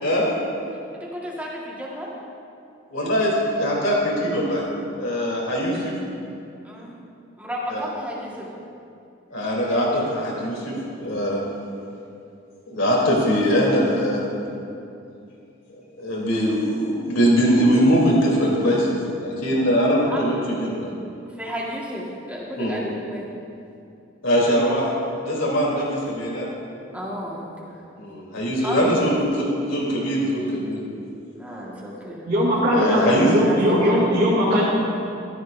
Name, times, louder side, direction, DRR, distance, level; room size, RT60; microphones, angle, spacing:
voice 1, 0.0-0.3 2.9-4.6 5.0-5.9 7.7-7.9 9.3-11.4 12.7-14.3 16.0-18.9 19.2-20.9 22.6-22.8 24.2-24.9 25.2-26.5 28.0-30.8 32.7-33.3, equal, 75° left, -4 dB, 3.1 m, -22 dB
voice 2, 0.9-2.1 6.6-7.0 7.4-8.5 20.1-20.3 21.4-23.3 26.9-27.8 28.6-29.4 31.3-32.2 32.8-34.1, equal, 5° right, -4 dB, 1.5 m, -32 dB
voice 3, 32.3-34.6, equal, 40° right, -9 dB, 2.3 m, -19 dB
14.0 x 13.5 x 2.6 m, 2.6 s
head